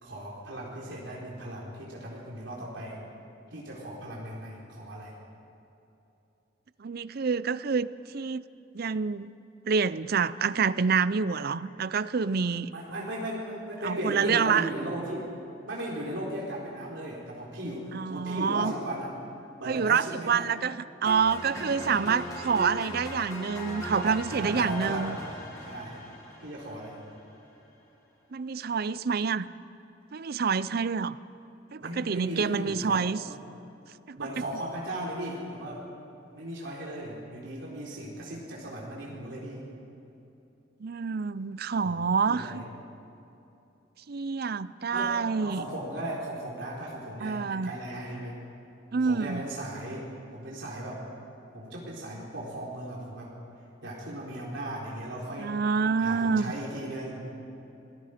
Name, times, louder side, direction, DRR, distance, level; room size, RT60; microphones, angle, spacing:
voice 1, 0.0-3.0 3.5-5.2 12.7-15.2 15.7-19.1 19.6-20.5 21.7-22.0 24.4-25.2 25.6-26.0 26.4-27.0 31.8-33.0 33.3-33.4 34.1-35.8 36.3-39.7 41.8-41.9 42.3-42.6 44.9-48.4 49.0-51.0 51.5-53.3 53.8-55.6 56.0-57.2, right 1 dB, 75° right, -4 dB, 3.9 m, -37 dB
voice 2, 6.8-8.4 8.7-9.3 9.7-12.7 13.8-14.7 17.9-18.7 19.7-25.2 28.3-29.5 30.1-31.2 31.7-33.2 34.1-34.3 40.8-42.6 44.1-45.6 47.2-47.8 48.9-49.5 55.4-56.5, right 5 dB, 55° right, 17 dB, 0.5 m, -27 dB
sound 1, 21.1-27.2, left 1 dB, 20° left, 6.1 m, -39 dB
26.5 x 19.0 x 5.1 m, 2.9 s
head